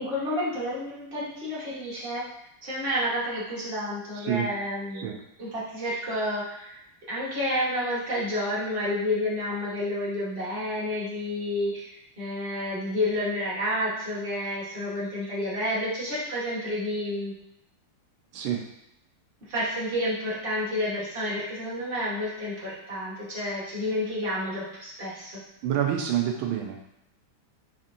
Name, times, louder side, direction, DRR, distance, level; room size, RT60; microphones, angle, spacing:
voice 1, 0.0-2.3 2.6-5.1 5.4-6.8 7.1-17.3 19.5-25.4, left 1 dB, 35° right, -8 dB, 1.0 m, -30 dB
voice 2, 25.6-26.8, right 10 dB, 85° right, 2 dB, 1.4 m, -27 dB
4.3 x 2.8 x 2.5 m, 0.80 s
omnidirectional pair, 2.3 m